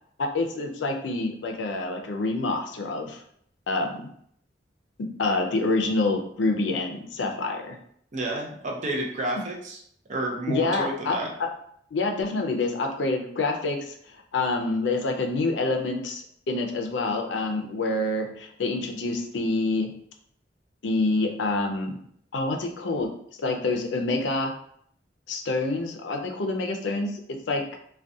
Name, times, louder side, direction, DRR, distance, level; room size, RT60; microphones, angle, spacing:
voice 1, 0.2-3.2 3.7-4.1 5.2-7.8 10.5-11.2 11.9-19.9 20.8-22.0 22.3-23.1 23.4-24.5 25.3-27.8, left 2 dB, 80° left, 3 dB, 0.4 m, -27 dB
voice 2, 8.1-9.8 10.1-11.3, right 1 dB, 40° right, -1 dB, 0.5 m, -30 dB
2.3 x 2.2 x 2.6 m, 0.67 s
head